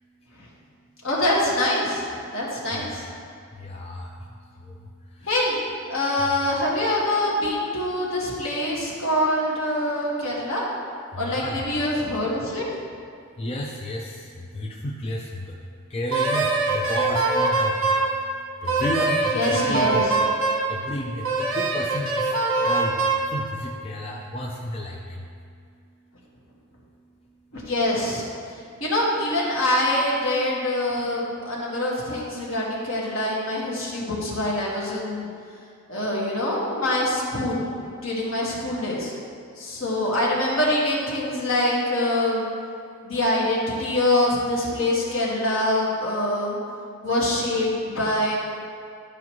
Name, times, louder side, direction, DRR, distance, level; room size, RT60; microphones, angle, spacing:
voice 1, 1.0-3.0 5.2-5.5 5.9-10.6 11.2-12.6 19.3-20.2 27.5-28.2 28.8-35.3 35.9-37.6 38.0-39.1 39.6-42.5 43.0-46.6 47.0-48.4, left 1 dB, 70° left, -5 dB, 1.7 m, -24 dB
voice 2, 2.7-3.0 3.6-4.2 4.6-5.3 6.2-6.3 11.1-11.6 13.4-15.6 15.9-18.0 18.6-20.1 20.7-22.3 22.6-25.3, equal, 30° left, -2 dB, 0.5 m, -32 dB
Wind instrument woodwind instrument, 16.1-18.1 18.7-20.7 21.2-23.3, right 3 dB, 80° right, 1.1 m, -23 dB
12.0 x 4.9 x 3.1 m, 2.3 s
head